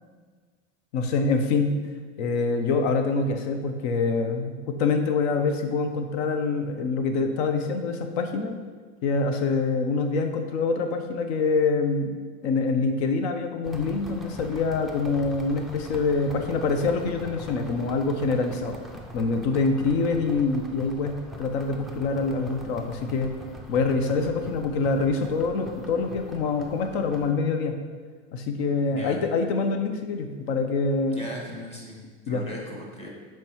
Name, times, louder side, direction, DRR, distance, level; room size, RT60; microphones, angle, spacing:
voice 1, 0.9-1.8 2.2-8.6 9.0-12.1 12.4-18.8 19.1-23.3 23.7-27.8 28.3-31.3 32.3-32.4, left 4 dB, 65° left, 6 dB, 0.8 m, -25 dB
sound 1, 13.6-27.3, equal, ahead, 0.3 m, -42 dB
voice 2, 28.9-29.2 31.1-33.1, left 1 dB, 15° left, -3 dB, 1.5 m, -38 dB
7.2 x 4.5 x 3.0 m, 1.5 s
supercardioid pair, 115°, 35 cm